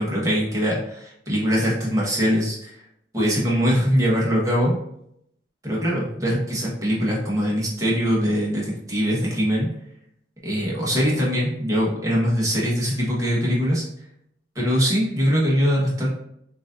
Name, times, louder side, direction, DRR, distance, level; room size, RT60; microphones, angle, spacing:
voice 1, 0.0-2.8 3.1-4.7 5.6-9.7 10.4-13.8 14.5-16.1, equal, 20° right, -4 dB, 1.2 m, -22 dB
6.0 x 2.6 x 2.5 m, 0.75 s
head